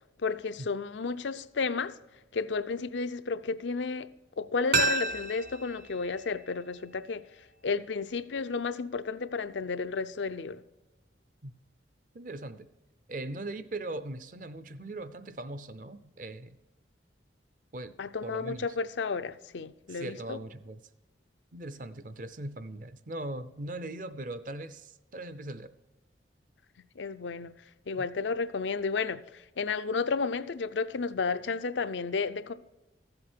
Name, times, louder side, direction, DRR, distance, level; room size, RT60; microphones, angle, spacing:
voice 1, 0.2-1.9 2.3-4.1 4.4-7.2 7.6-10.6 18.0-20.4 27.0-27.6 27.9-32.5, left 4 dB, 85° left, 0.6 m, -32 dB
sound 1, 4.7-7.5 7.8-7.9, right 3 dB, 60° right, 1.8 m, -32 dB
voice 2, 12.1-12.7 13.1-16.6 17.7-18.7 19.9-20.8 21.5-25.7 27.9-28.1, right 2 dB, 45° right, 0.6 m, -40 dB
14.0 x 7.8 x 4.4 m
head